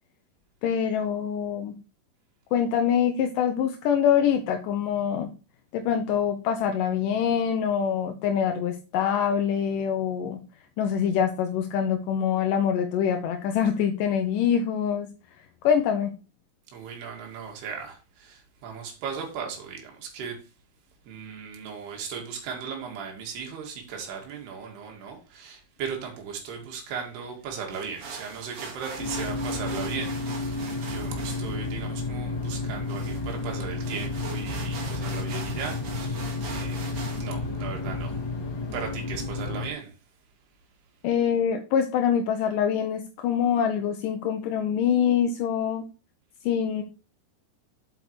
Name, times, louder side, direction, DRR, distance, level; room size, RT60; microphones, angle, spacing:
voice 1, 0.6-1.8 2.5-5.3 5.7-10.4 10.8-15.1 15.6-16.1 41.0-45.8 46.4-46.8, left 8 dB, 80° left, 2.0 m, -25 dB
voice 2, 16.7-20.5 21.1-36.8 37.2-38.4 38.7-40.0, right 6 dB, 80° right, 4.1 m, -37 dB
sound 1, 27.7-37.3, right 4 dB, 45° right, 2.2 m, -42 dB
sound 2, 29.0-39.7, left 3 dB, 35° left, 2.5 m, -31 dB
8.2 x 8.1 x 3.2 m
omnidirectional pair, 4.6 m